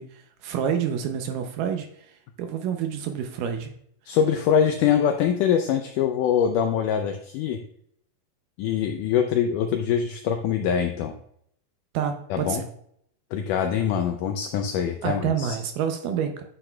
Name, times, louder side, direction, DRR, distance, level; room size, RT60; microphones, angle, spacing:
voice 1, 0.0-3.7 11.9-12.7 15.0-16.4, right 8 dB, 80° right, 6 dB, 2.1 m, -28 dB
voice 2, 4.1-7.6 8.6-11.2 12.3-12.6 13.3-15.6, left 8 dB, 85° left, 6 dB, 1.8 m, -23 dB
9.8 x 5.9 x 2.2 m, 0.69 s
omnidirectional pair, 4.2 m